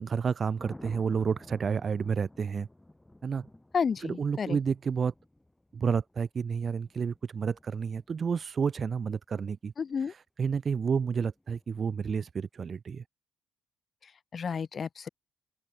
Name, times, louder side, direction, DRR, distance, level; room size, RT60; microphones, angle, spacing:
voice 1, 0.0-2.7 3.2-3.5 4.0-5.1 5.7-9.7 10.4-13.0, right 6 dB, 45° right, 3.3 m, -30 dB
Thunder, 0.6-8.7 11.4-11.7, left 1 dB, 10° left, 7.5 m, -53 dB
voice 2, 3.7-4.6 9.8-10.1 14.0-15.1, left 6 dB, 45° left, 2.1 m, -32 dB
open air
cardioid pair, 90°, 0 cm